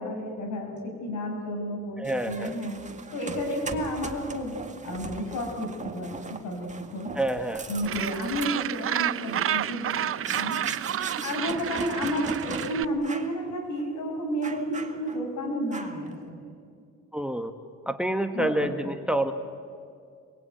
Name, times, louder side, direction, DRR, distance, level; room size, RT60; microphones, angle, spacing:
voice 1, 0.0-2.8 3.1-4.6 4.8-7.1 7.7-10.6 11.2-16.4 18.3-18.7, equal, 75° left, 3 dB, 6.3 m, -31 dB
voice 2, 2.0-2.5 7.1-7.6 17.1-17.5 17.8-19.3, right 1 dB, 5° right, 7 dB, 1.6 m, -27 dB
sound 1, 2.0-12.7 13.0-13.4 13.8-13.9 14.4-15.3 15.7-16.1, right 4 dB, 25° right, 2.0 m, -40 dB
Gull seagull, 7.9-12.9, right 10 dB, 50° right, 0.6 m, -30 dB
28.0 x 23.0 x 9.2 m, 2.3 s
cardioid pair, 90°, 30 cm